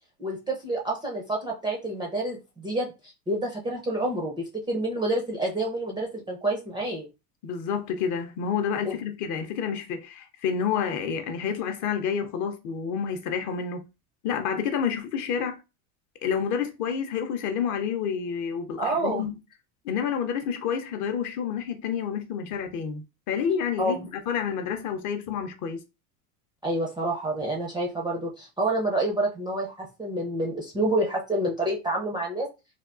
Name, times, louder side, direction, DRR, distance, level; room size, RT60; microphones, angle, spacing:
voice 1, 0.2-2.9 3.3-7.1 8.9-9.0 18.8-19.2 23.8-24.1 26.6-32.5, right 1 dB, 10° right, 0.4 m, -28 dB
voice 2, 7.4-13.8 14.2-15.6 16.2-19.4 19.8-25.8, left 7 dB, 40° left, 0.6 m, -29 dB
3.4 x 2.3 x 2.4 m
supercardioid pair, 125°, 47 cm